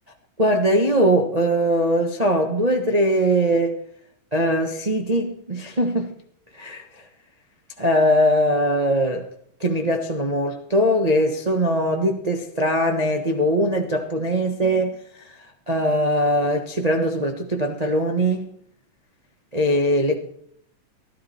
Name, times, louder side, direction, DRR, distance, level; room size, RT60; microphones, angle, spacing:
voice 1, 0.4-3.7 4.3-6.1 6.5-6.8 7.8-9.3 9.6-14.9 15.7-18.5 19.5-20.1, equal, 65° right, 0.4 m, -21 dB
14.0 x 13.5 x 4.3 m
omnidirectional pair, 3.4 m